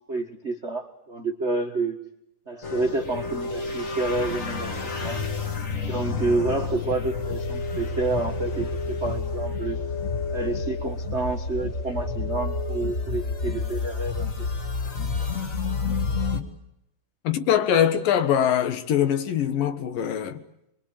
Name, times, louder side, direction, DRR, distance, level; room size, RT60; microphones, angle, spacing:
voice 1, 0.1-2.0 2.5-4.7 5.0-5.3 5.8-9.8 10.3-14.3, right 3 dB, 75° right, 0.6 m, -29 dB
sound 1, 2.6-16.4, left 4 dB, 35° left, 1.5 m, -29 dB
voice 2, 17.2-20.4, left 9 dB, 90° left, 3.1 m, -23 dB
25.0 x 23.0 x 8.7 m
omnidirectional pair, 3.8 m